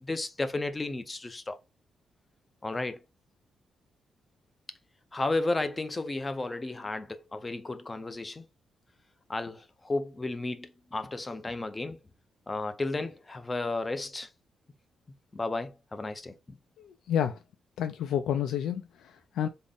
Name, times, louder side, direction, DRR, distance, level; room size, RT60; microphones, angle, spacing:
voice 1, 0.0-1.6 2.6-3.0 5.1-8.4 9.3-12.0 12.5-14.3 15.3-16.6, left 2 dB, 20° left, 0.4 m, -33 dB
voice 2, 16.8-17.4 17.8-19.5, left 9 dB, 90° left, 0.3 m, -30 dB
3.6 x 2.0 x 3.7 m
cardioid pair, 130°, 0 cm